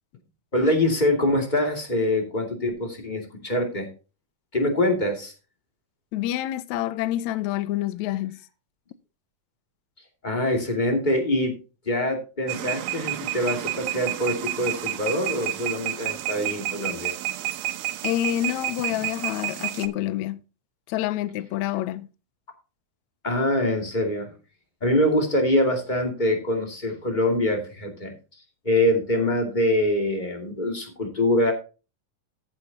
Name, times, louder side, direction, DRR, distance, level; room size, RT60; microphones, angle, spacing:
voice 1, 0.5-3.9 4.5-5.3 10.2-11.6 11.9-17.1 23.2-24.3 24.8-28.1 28.6-31.5, left 1 dB, 15° left, 2.0 m, -24 dB
voice 2, 6.1-8.4 18.0-20.4 20.9-22.1, left 13 dB, 80° left, 1.7 m, -27 dB
sound 1, 12.5-19.9, right 15 dB, 90° right, 2.7 m, -30 dB
14.0 x 8.6 x 2.9 m
omnidirectional pair, 4.0 m